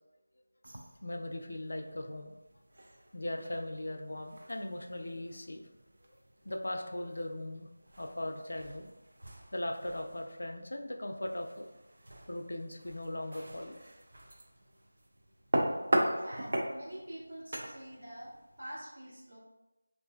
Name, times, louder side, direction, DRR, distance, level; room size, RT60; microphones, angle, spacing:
sound 1, 0.6-18.8, right 1 dB, 55° right, 0.4 m, -40 dB
voice 1, 1.0-2.3 3.1-5.6 6.4-7.7 8.0-8.9 9.5-11.7 12.3-13.8, left 1 dB, 70° left, 4 dB, 0.4 m, -39 dB
voice 2, 16.0-19.4, right 1 dB, 75° right, -6 dB, 1.2 m, -46 dB
3.0 x 2.5 x 2.3 m, 1.0 s
figure-of-eight pair, 175°, 0 cm